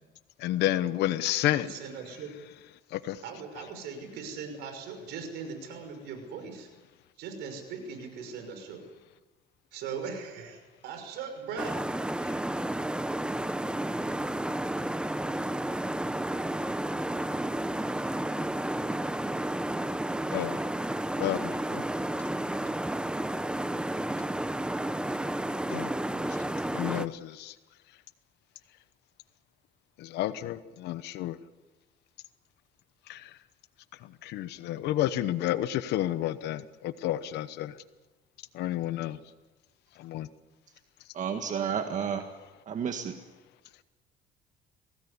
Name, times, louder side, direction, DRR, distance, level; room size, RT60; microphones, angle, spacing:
voice 1, 0.4-1.7 3.1-3.2 20.3-20.6 21.2-21.8 25.7-25.9 26.7-27.5 30.0-31.4 33.1-33.2 34.2-37.7 38.5-39.2 40.0-40.3, left 13 dB, 80° left, 14 dB, 1.0 m, -30 dB
voice 2, 1.4-2.3 3.2-6.7 7.2-8.8 9.7-12.1, right 5 dB, 85° right, 6 dB, 5.9 m, -40 dB
sound 1, 11.6-27.1, right 1 dB, 5° right, 0.8 m, -31 dB
voice 3, 41.1-42.3 42.7-43.1, right 7 dB, 45° right, 5 dB, 1.7 m, -31 dB
23.5 x 18.0 x 9.8 m, 1.2 s
cardioid pair, 110°, 17 cm